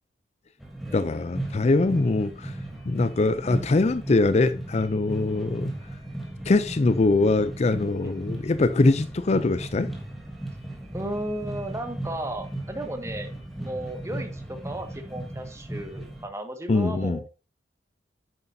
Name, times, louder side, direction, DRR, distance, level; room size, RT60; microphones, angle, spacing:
sound 1, 0.6-16.2, right 1 dB, ahead, 3.1 m, -37 dB
voice 1, 0.9-2.5 2.9-5.7 6.5-9.9 16.7-17.2, left 3 dB, 40° left, 0.4 m, -23 dB
voice 2, 10.9-13.3 13.6-17.3, right 1 dB, 15° right, 1.7 m, -34 dB
9.7 x 9.1 x 2.7 m
head